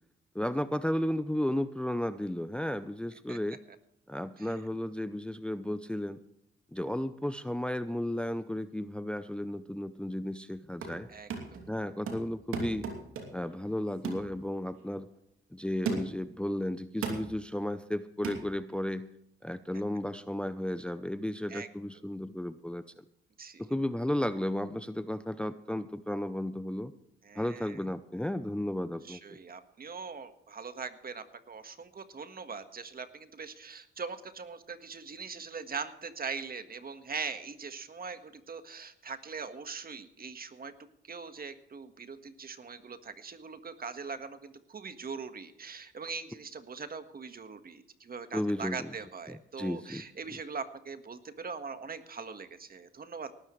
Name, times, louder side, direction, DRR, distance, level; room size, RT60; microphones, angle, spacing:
voice 1, 0.3-3.6 4.1-6.2 6.7-11.1 11.7-12.9 13.3-15.1 15.5-19.1 19.4-22.8 23.6-26.9 27.4-29.4 48.3-48.9 49.3-50.0, left 1 dB, 5° left, 12 dB, 0.6 m, -34 dB
sound 1, 10.5-11.0 11.3-11.7 12.1-13.5 14.0-14.3 14.8-14.9 15.9-16.3 17.0-17.3 18.2-18.4, right 5 dB, 90° right, 2.7 m, -36 dB
voice 2, 11.1-11.6 21.5-21.7 23.4-23.6 27.2-27.8 29.0-40.7 41.0-53.3, right 5 dB, 45° right, 9 dB, 1.6 m, -41 dB
18.5 x 13.5 x 3.2 m, 0.78 s
cardioid pair, 75°, 21 cm